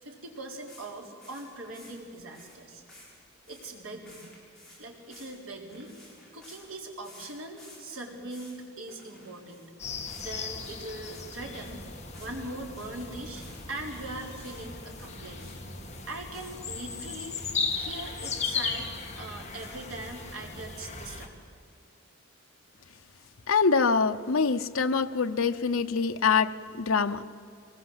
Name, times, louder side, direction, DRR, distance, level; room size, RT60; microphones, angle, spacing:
voice 1, 0.0-2.8 3.5-4.2 4.8-5.9 6.3-9.7 10.2-11.8 12.2-15.5 16.0-17.4 17.8-18.9 19.2-21.3, right 2 dB, 80° right, 0 dB, 4.1 m, -41 dB
sound 1, 0.7-6.6 7.0-7.8 8.1-8.6 8.9-9.7 10.0-10.3 10.6-10.7 11.0-11.3 11.6-12.4 12.8-17.6 17.9-18.7 18.9-20.4, left 1 dB, 5° left, 7.4 m, -54 dB
sound 2, 9.8-21.3, left 5 dB, 35° left, 2.1 m, -37 dB
voice 2, 23.5-26.5 26.8-27.2, left 5 dB, 85° left, 8 dB, 0.8 m, -24 dB
23.0 x 20.5 x 8.0 m, 2.3 s
head